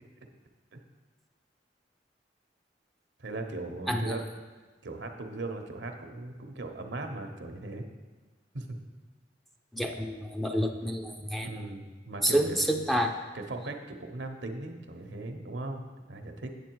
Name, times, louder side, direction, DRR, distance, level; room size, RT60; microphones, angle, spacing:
voice 1, 3.2-4.2 4.8-7.9 8.5-8.7 11.4-12.6 13.3-15.8 16.1-16.5, right 2 dB, 75° right, 4 dB, 1.0 m, -38 dB
voice 2, 9.7-11.5 12.2-13.2, equal, ahead, 2 dB, 0.5 m, -28 dB
8.4 x 7.4 x 4.6 m, 1.3 s
head